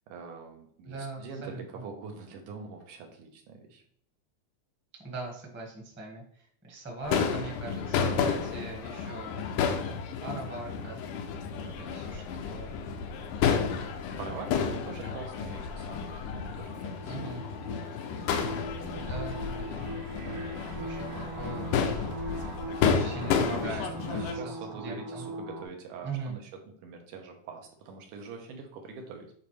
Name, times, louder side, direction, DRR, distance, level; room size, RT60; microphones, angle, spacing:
voice 1, 0.1-3.8 11.6-12.0 14.2-17.2 23.4-26.5 26.8-29.3, right 5 dB, 85° right, 3 dB, 2.5 m, -43 dB
voice 2, 0.8-1.8 5.0-9.9 10.2-11.0 11.8-12.7 14.1-14.6 15.0-15.2 17.0-17.4 18.9-19.8 20.8-22.1 22.8-25.2 26.0-26.4, right 3 dB, 10° right, -1 dB, 0.6 m, -41 dB
Crowd / Fireworks, 7.0-24.3, left 6 dB, 85° left, 2.3 m, -31 dB
sound 1, 15.0-19.8, left 2 dB, 65° left, 1.3 m, -53 dB
sound 2, 16.9-25.6, right 2 dB, 65° right, 1.6 m, -40 dB
8.8 x 3.9 x 3.3 m, 0.64 s
omnidirectional pair, 3.5 m